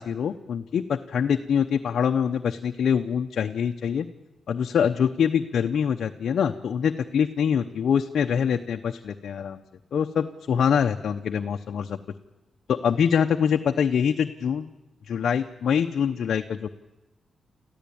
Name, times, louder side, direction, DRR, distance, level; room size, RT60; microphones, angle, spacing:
voice 1, 0.0-4.1 4.5-9.6 9.9-12.0 12.7-14.7 15.1-16.7, left 7 dB, 75° left, 5 dB, 0.8 m, -24 dB
27.5 x 14.5 x 8.6 m, 1.0 s
cardioid pair, 80°, 0 cm